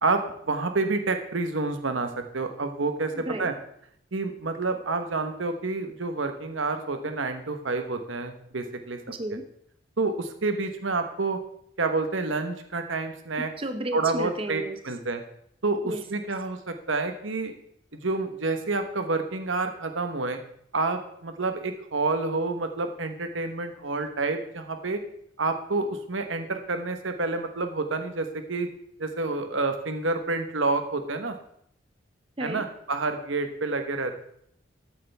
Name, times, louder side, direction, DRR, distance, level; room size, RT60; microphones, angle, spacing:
voice 1, 0.0-3.5 4.1-9.0 10.0-11.4 11.8-13.5 13.9-15.2 15.6-17.5 17.9-20.4 20.7-25.0 25.4-28.7 29.0-31.3 32.4-34.1, right 3 dB, 85° right, 7 dB, 1.2 m, -28 dB
voice 2, 3.1-3.5 9.1-9.4 13.6-14.8 15.8-16.0 32.4-32.6, right 1 dB, 30° right, 7 dB, 0.7 m, -32 dB
13.5 x 8.5 x 3.5 m, 0.69 s
head